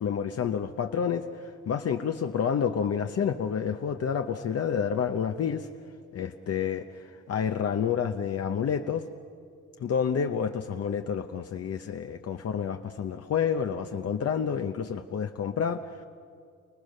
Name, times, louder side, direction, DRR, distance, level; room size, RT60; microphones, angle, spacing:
voice 1, 0.0-1.2 1.7-5.7 6.1-9.1 9.8-15.8, left 7 dB, 55° left, 5 dB, 1.0 m, -29 dB
30.0 x 18.5 x 6.6 m, 2.2 s
cardioid pair, 90°, 30 cm